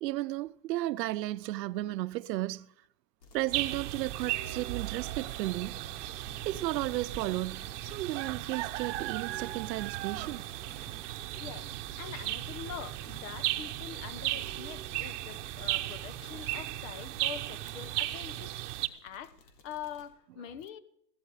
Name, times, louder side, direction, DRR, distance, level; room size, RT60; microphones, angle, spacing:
voice 1, 0.0-2.7 3.3-5.8 6.4-10.4, right 16 dB, 90° right, 0.7 m, -34 dB
sound 1, 3.2-7.4 10.1-20.1, left 3 dB, 80° left, 3.7 m, -59 dB
sound 2, 3.5-18.9, right 16 dB, 50° right, 0.9 m, -36 dB
sound 3, 5.6-15.8, right 1 dB, 5° left, 0.8 m, -53 dB
voice 2, 11.4-11.7 12.0-18.5 18.8-19.4 19.6-20.8, left 9 dB, 50° left, 1.1 m, -44 dB
15.0 x 12.5 x 4.9 m
supercardioid pair, 155°, 48 cm